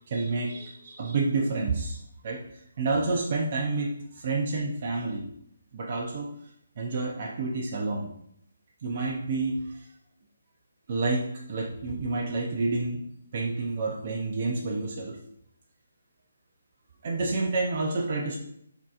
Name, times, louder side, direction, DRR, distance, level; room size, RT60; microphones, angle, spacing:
voice 1, 0.0-5.3 5.7-6.3 6.8-8.1 8.8-9.9 10.9-13.0 13.3-15.2 17.0-18.4, right 3 dB, 45° right, -1 dB, 0.5 m, -29 dB
5.9 x 2.8 x 2.4 m, 0.73 s
figure-of-eight pair, 155°, 0 cm